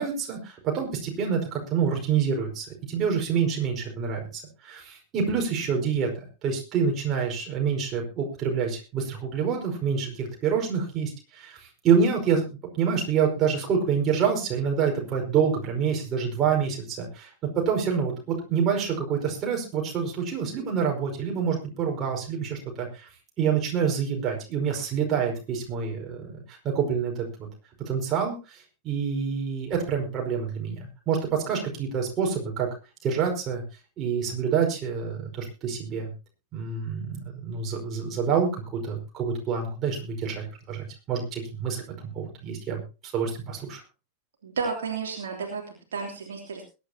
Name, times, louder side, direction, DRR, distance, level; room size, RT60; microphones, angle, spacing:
voice 1, 0.0-12.5 12.7-17.3 17.5-23.1 23.4-27.5 27.8-32.7 33.0-33.6 34.0-36.1 36.5-41.8 42.1-43.8, right 6 dB, 30° right, 0 dB, 5.0 m, -27 dB
voice 2, 44.4-46.6, right 5 dB, 65° right, 1 dB, 3.1 m, -32 dB
21.5 x 11.0 x 2.9 m, 0.31 s
figure-of-eight pair, 90°, 0 cm